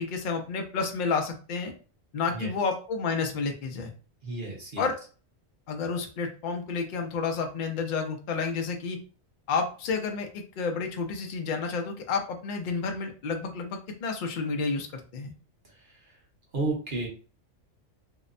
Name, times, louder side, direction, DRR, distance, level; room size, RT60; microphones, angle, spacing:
voice 1, 0.0-1.7 2.1-3.9 4.8-5.0 5.7-9.0 9.5-15.3, left 4 dB, 75° left, 4 dB, 0.4 m, -30 dB
voice 2, 4.2-4.9 15.7-16.1 16.5-17.1, right 2 dB, 45° right, -2 dB, 0.8 m, -32 dB
2.7 x 2.1 x 2.4 m, 0.37 s
omnidirectional pair, 1.4 m